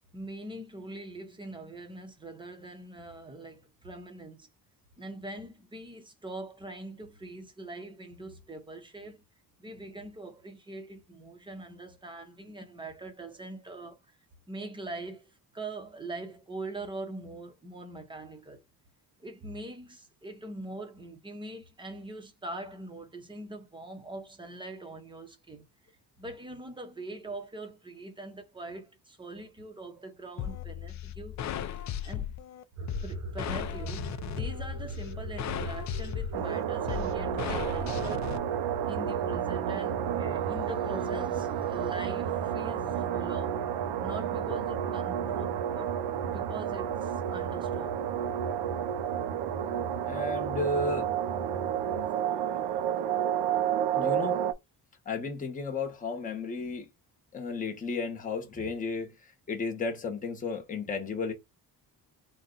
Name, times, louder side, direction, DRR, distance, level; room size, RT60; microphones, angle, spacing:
voice 1, 0.1-4.5 5.0-9.2 9.6-14.0 14.5-18.6 19.2-25.6 26.2-31.4 32.0-32.3 32.8-38.3 38.9-43.6 44.0-45.9 46.3-48.0, right 2 dB, 10° right, 0.8 m, -42 dB
sound 1, 30.4-38.4, left 10 dB, 45° left, 0.4 m, -36 dB
sound 2, 32.8-52.1, right 3 dB, 45° right, 0.8 m, -40 dB
sound 3, 36.3-54.5, right 10 dB, 85° right, 0.6 m, -31 dB
voice 2, 50.1-51.1 53.9-54.4 55.1-56.9 57.3-59.1 59.5-61.3, left 3 dB, 20° left, 1.0 m, -33 dB
3.9 x 2.3 x 3.8 m
cardioid pair, 175°, 39 cm